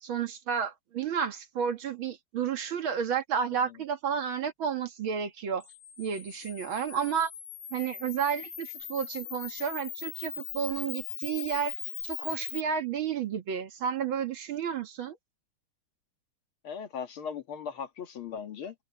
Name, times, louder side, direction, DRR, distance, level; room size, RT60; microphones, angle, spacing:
voice 1, 0.0-5.6 6.0-7.3 7.7-11.8 12.0-15.2, right 7 dB, 75° right, 2.4 m, -31 dB
Camera, 5.6-12.6, left 9 dB, 60° left, 1.6 m, -40 dB
voice 2, 16.6-18.7, left 7 dB, 85° left, 2.7 m, -38 dB
omnidirectional pair, 2.3 m